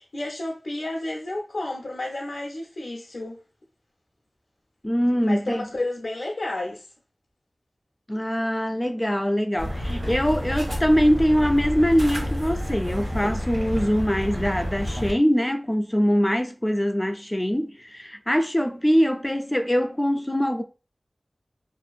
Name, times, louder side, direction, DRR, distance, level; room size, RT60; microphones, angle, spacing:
voice 1, 0.0-3.4 5.2-6.9, left 2 dB, 90° left, 0.6 m, -31 dB
voice 2, 4.8-5.7 8.1-20.6, equal, 20° left, 0.3 m, -23 dB
sound 1, 9.6-15.1, equal, 85° right, 0.9 m, -29 dB
2.7 x 2.4 x 2.3 m
wide cardioid pair, 40°, 0 cm